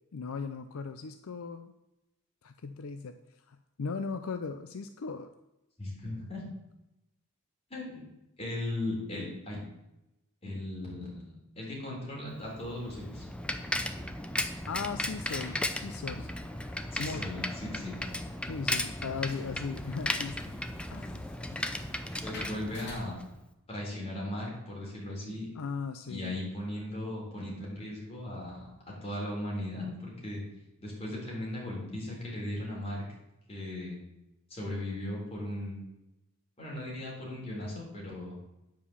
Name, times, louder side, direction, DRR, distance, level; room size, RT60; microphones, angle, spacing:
voice 1, 0.1-1.7 2.4-3.1 3.5-5.3 14.7-16.3 17.0-17.3 18.4-20.5 20.9-21.6 25.5-26.4, left 5 dB, 70° left, 9 dB, 0.5 m, -38 dB
voice 2, 5.8-6.4 7.7-8.1 8.4-9.6 10.4-13.3 16.9-18.0 22.2-23.2 23.7-25.5 26.1-30.4 30.8-33.0 33.5-34.0 34.5-35.8 36.6-38.4, left 1 dB, 30° left, -3 dB, 3.5 m, -37 dB
Bicycle, 12.5-23.4, left 1 dB, 5° left, 0.5 m, -36 dB
sound 1, 14.8-23.0, left 2 dB, 55° left, 2.8 m, -52 dB
9.2 x 5.2 x 6.9 m, 0.91 s
head